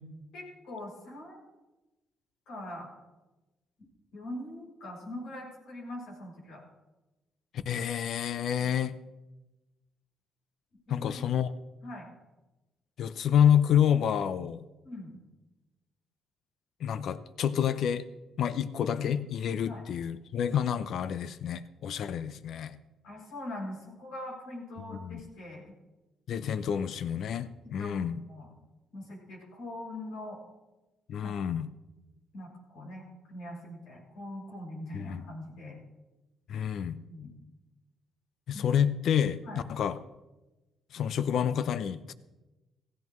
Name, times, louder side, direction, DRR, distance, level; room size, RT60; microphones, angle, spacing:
voice 1, 0.3-1.4 2.5-2.9 4.1-6.6 10.9-11.2 11.8-12.1 14.8-15.2 19.6-19.9 23.0-25.7 27.6-28.0 28.3-28.5 28.9-30.4 31.2-31.3 32.3-35.8 37.1-37.3 38.5-38.7 39.4-39.6, left 1 dB, 90° left, -2 dB, 6.3 m, -42 dB
voice 2, 7.7-8.9 10.9-11.5 13.0-14.6 16.8-18.1 18.4-22.8 25.0-25.2 26.3-28.2 31.1-31.7 34.9-35.3 36.5-37.0 38.5-39.4 39.7-40.0 40.9-42.1, left 9 dB, 70° left, 14 dB, 0.6 m, -28 dB
16.5 x 16.5 x 3.1 m, 1.1 s
cardioid pair, 90°, 0 cm